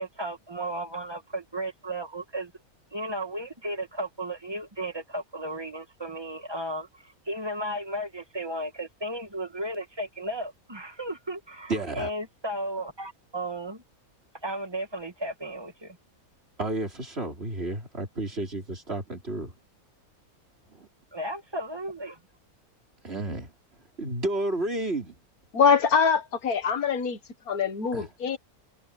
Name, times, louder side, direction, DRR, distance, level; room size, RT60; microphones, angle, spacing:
voice 1, 0.0-2.5 2.9-13.8 14.4-16.0 21.1-22.2, right 1 dB, 20° right, 1.6 m, -34 dB
voice 2, 11.7-12.1 16.6-19.5 20.7-20.9 23.0-23.5 24.0-25.2 27.9-28.1, right 2 dB, 45° right, 4.3 m, -31 dB
voice 3, 25.5-27.2 27.5-28.4, left 6 dB, 80° left, 2.0 m, -23 dB
omnidirectional pair, 1.5 m